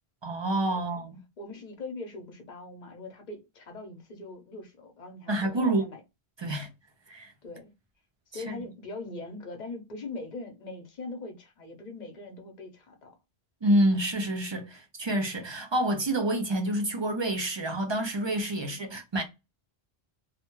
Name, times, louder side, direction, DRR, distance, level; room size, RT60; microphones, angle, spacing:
voice 1, 0.2-1.2 5.3-5.8 6.4-6.7 7.1-7.3 8.3-8.6 13.6-19.2, right 1 dB, 45° right, 0.3 m, -28 dB
voice 2, 1.4-6.0 7.4-7.7 8.3-13.2 18.6-18.9, left 2 dB, 50° left, 0.8 m, -41 dB
2.2 x 2.1 x 2.9 m
omnidirectional pair, 1.1 m